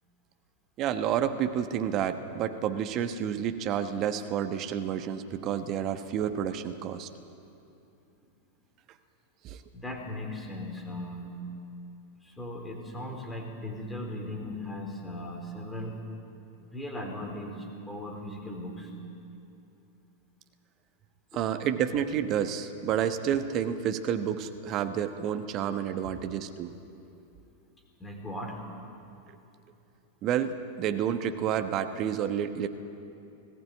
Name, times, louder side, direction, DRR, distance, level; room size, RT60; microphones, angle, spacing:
voice 1, 0.8-7.1 9.4-9.6 21.3-26.7 30.2-32.7, right 9 dB, 35° right, 8 dB, 1.1 m, -30 dB
voice 2, 9.7-11.4 12.2-16.0 16.7-18.9 21.3-21.4 26.0-26.1 28.0-28.6, left 1 dB, 10° left, 1 dB, 3.7 m, -38 dB
20.0 x 15.5 x 8.9 m, 2.8 s
figure-of-eight pair, 90°, 0 cm